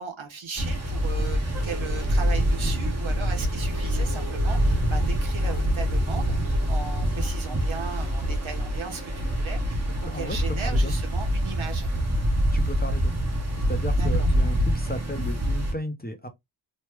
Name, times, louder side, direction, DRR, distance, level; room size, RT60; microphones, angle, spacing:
voice 1, 0.0-11.9 13.9-14.3, right 5 dB, 70° right, 1.0 m, -37 dB
sound 1, 0.6-15.7, equal, 30° right, 1.1 m, -25 dB
voice 2, 10.0-10.4 10.6-10.9 12.5-13.1 13.7-16.3, equal, 20° left, 0.7 m, -34 dB
3.1 x 2.1 x 3.3 m
wide cardioid pair, 65°, 49 cm